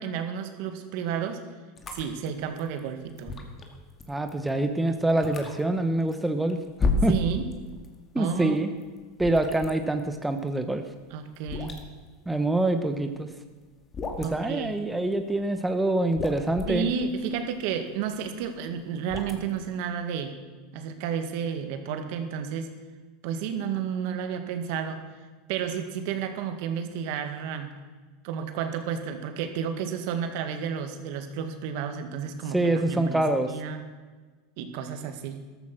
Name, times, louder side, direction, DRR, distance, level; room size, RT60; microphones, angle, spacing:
voice 1, 0.0-1.4 1.9-3.5 7.1-7.5 8.2-8.7 11.1-11.8 14.2-14.8 16.7-20.4 20.7-22.7 23.2-25.0 25.5-27.7 28.2-33.2 33.5-33.8 34.6-35.4, right 7 dB, 65° right, 7 dB, 1.9 m, -31 dB
sound 1, 1.8-8.0 8.2-13.3 13.6-14.5 15.1-15.6 15.9-19.7, left 3 dB, 25° left, 2.2 m, -33 dB
voice 2, 4.1-6.6 7.0-7.1 8.1-8.7 9.2-10.8 12.3-13.3 14.2-16.9 32.5-33.5, right 2 dB, 5° right, 7 dB, 1.0 m, -25 dB
14.0 x 13.5 x 6.1 m, 1.4 s
supercardioid pair, 130°, 0 cm